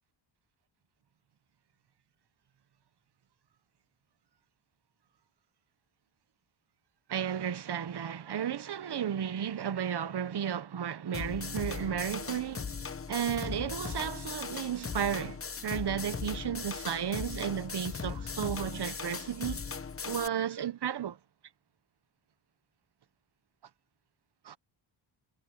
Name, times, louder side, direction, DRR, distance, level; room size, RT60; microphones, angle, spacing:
voice 1, 7.1-12.7 13.1-19.6 20.1-21.2 24.4-24.6, right 9 dB, 55° right, 0.9 m, -33 dB
sound 1, 11.1-20.3, left 5 dB, 25° left, 0.9 m, -38 dB
wide cardioid pair, 155°, 49 cm